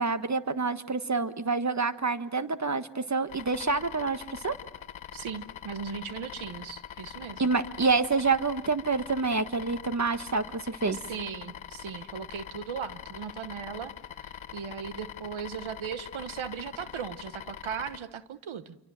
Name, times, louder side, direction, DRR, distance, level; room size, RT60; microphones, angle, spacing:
voice 1, 0.0-4.5 7.4-11.0, right 4 dB, 35° right, 11 dB, 1.5 m, -27 dB
sound 1, 3.3-18.0, left 10 dB, 80° left, 1.1 m, -43 dB
voice 2, 5.1-7.5 10.9-13.9 14.2-18.8, right 7 dB, 85° right, 13 dB, 1.2 m, -38 dB
27.5 x 25.0 x 7.6 m, 0.99 s
cardioid pair, 45°, 47 cm